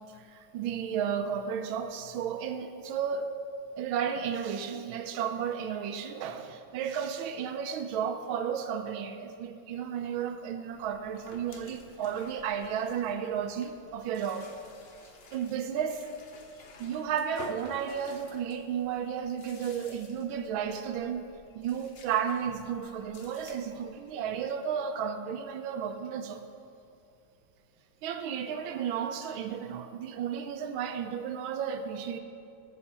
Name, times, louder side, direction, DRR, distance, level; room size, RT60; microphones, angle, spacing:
voice 1, 0.1-3.3 3.8-14.5 15.3-16.1 16.8-26.4 28.0-32.2, right 8 dB, 80° right, 8 dB, 1.5 m, -33 dB
sound 1, 10.7-24.4, left 3 dB, 55° left, 0.6 m, -52 dB
16.0 x 6.8 x 4.3 m, 2.5 s
omnidirectional pair, 2.3 m